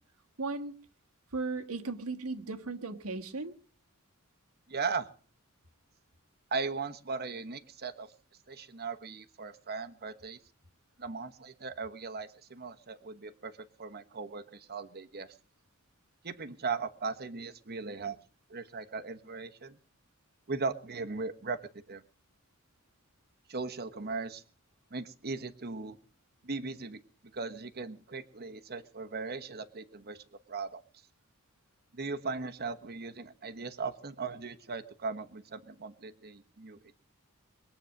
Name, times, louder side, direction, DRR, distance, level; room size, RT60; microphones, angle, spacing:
voice 1, 0.4-0.7 1.3-3.5, right 3 dB, 85° right, 5 dB, 1.6 m, -36 dB
voice 2, 4.7-5.1 6.5-8.1 8.5-10.4 11.0-15.4 16.2-18.2 18.5-19.8 20.5-22.0 23.5-24.4 24.9-26.0 26.4-27.0 27.3-30.8 31.9-36.9, right 4 dB, 45° right, 9 dB, 1.2 m, -38 dB
22.0 x 8.7 x 6.5 m, 0.43 s
head